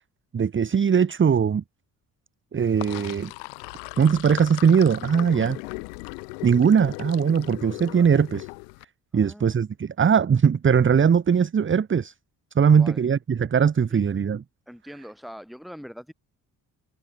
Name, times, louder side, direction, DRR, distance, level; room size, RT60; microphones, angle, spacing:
voice 1, 0.3-1.6 2.5-3.3 4.0-5.6 6.4-8.5 9.1-12.1 12.6-14.4, right 7 dB, 25° right, 0.9 m, -20 dB
Sink (filling or washing), 2.6-8.8, left 34 dB, 75° left, 1.5 m, -38 dB
voice 2, 9.1-9.6 12.6-13.0 13.9-14.0 14.7-16.1, equal, ahead, 5.6 m, -42 dB
hypercardioid pair, 45°, 47 cm